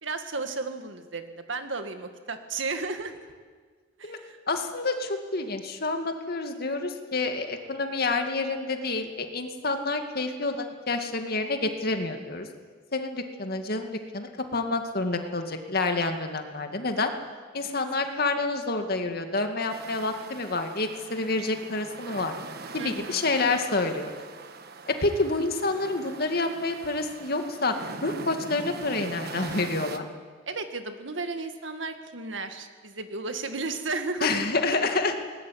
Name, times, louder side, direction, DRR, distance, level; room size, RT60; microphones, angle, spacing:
voice 1, 0.0-3.3 4.0-4.4 17.6-17.7 22.8-23.2 30.5-34.3, right 3 dB, 75° right, 7 dB, 2.1 m, -34 dB
voice 2, 4.5-12.5 12.9-17.1 17.5-22.3 22.7-24.1 24.9-27.8 28.0-30.1 34.2-35.2, left 3 dB, 55° left, 5 dB, 2.2 m, -28 dB
sound 1, 19.7-30.0, right 3 dB, 55° right, 1.4 m, -41 dB
20.0 x 19.5 x 9.4 m, 1.5 s
head